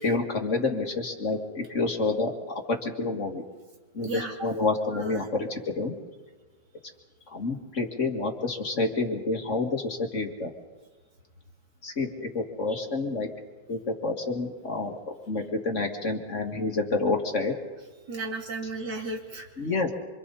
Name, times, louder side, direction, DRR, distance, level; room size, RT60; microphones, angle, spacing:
voice 1, 0.0-2.3 2.7-3.4 3.9-5.9 7.3-10.5 11.8-13.3 13.7-15.0 15.3-17.6 19.6-19.9, left 3 dB, 45° left, 3 dB, 2.4 m, -28 dB
voice 2, 4.0-4.3 4.9-5.3 18.1-19.4, right 2 dB, 85° right, 1 dB, 3.4 m, -34 dB
27.0 x 26.5 x 4.2 m, 1.3 s
omnidirectional pair, 1.8 m